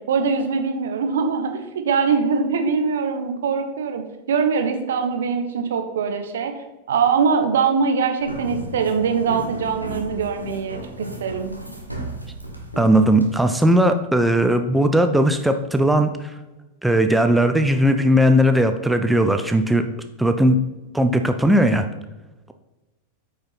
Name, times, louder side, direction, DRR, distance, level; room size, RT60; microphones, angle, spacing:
voice 1, 0.1-6.5 6.9-11.5, right 5 dB, 60° right, 6 dB, 1.2 m, -22 dB
sound 1, 8.2-13.7, right 1 dB, 90° right, 1.4 m, -34 dB
voice 2, 12.8-16.4 16.8-19.8 20.2-20.6 20.9-21.9, equal, 5° right, 7 dB, 0.6 m, -18 dB
8.6 x 5.6 x 5.9 m, 1.1 s
figure-of-eight pair, 90°, 0 cm